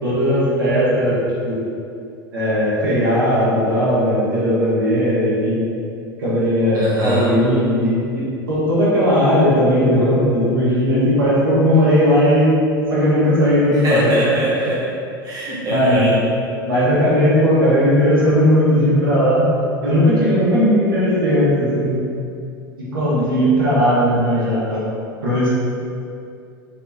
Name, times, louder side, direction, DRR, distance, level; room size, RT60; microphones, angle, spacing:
voice 1, 0.0-1.2 1.4-1.6 2.3-5.6 6.2-8.2 8.5-12.5 12.9-14.3 15.7-16.1 16.6-19.5 19.8-22.0 22.9-24.9 25.2-25.5, equal, 70° right, -8 dB, 1.1 m, -17 dB
voice 2, 6.7-7.3 13.8-14.9 15.2-16.2, equal, 30° right, -7 dB, 0.8 m, -21 dB
3.3 x 3.3 x 2.7 m, 2.5 s
figure-of-eight pair, 80°, 12 cm